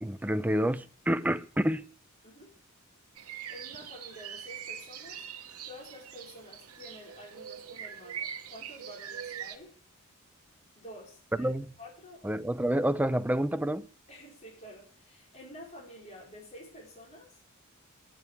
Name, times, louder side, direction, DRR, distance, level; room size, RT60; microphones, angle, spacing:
voice 1, 0.0-1.9 11.4-11.7 12.2-13.8, right 1 dB, 5° right, 0.5 m, -28 dB
sound 1, 3.2-9.6, right 8 dB, 85° right, 1.1 m, -42 dB
voice 2, 3.5-5.2 5.6-9.8 10.8-11.5 11.8-12.3 14.1-17.4, equal, 30° left, 4.9 m, -49 dB
9.1 x 8.8 x 8.3 m
head